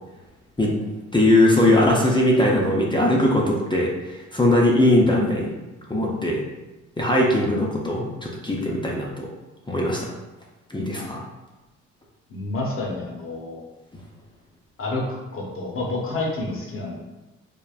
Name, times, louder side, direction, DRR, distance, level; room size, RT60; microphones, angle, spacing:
voice 1, 1.1-5.5 5.9-6.4 7.0-9.3 9.7-10.1 10.7-11.2, left 1 dB, 15° left, -2 dB, 0.6 m, -20 dB
voice 2, 12.3-13.6 14.8-15.0 15.3-17.0, left 2 dB, 40° left, -2 dB, 0.8 m, -29 dB
3.4 x 2.1 x 2.4 m, 1.1 s
supercardioid pair, 55°, 32 cm